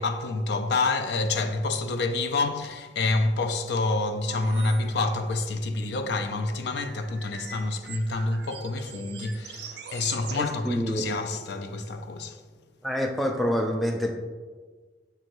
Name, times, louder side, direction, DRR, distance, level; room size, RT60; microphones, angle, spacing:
voice 1, 0.0-12.4, left 3 dB, 70° left, 0.4 m, -28 dB
sound 1, 4.3-5.0 5.3-5.4 6.3-11.2, right 6 dB, 70° right, 0.5 m, -43 dB
voice 2, 10.3-11.1 12.8-14.1, equal, ahead, 0.4 m, -27 dB
6.5 x 2.7 x 3.0 m
head